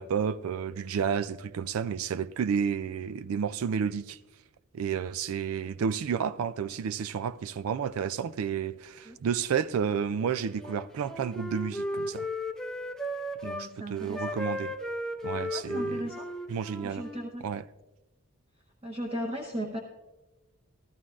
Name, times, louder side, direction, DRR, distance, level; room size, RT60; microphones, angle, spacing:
voice 1, 0.0-4.2 4.7-12.3 13.4-14.7 15.2-16.0 16.5-17.0 17.4-17.6, right 7 dB, 85° right, 0.4 m, -31 dB
Wind instrument woodwind instrument, 10.5-13.7 14.1-17.3, left 1 dB, 5° left, 0.5 m, -35 dB
voice 2, 13.4-14.3 15.3-16.3 16.8-17.4 18.8-19.8, equal, 25° right, 0.9 m, -37 dB
14.5 x 14.0 x 2.4 m
head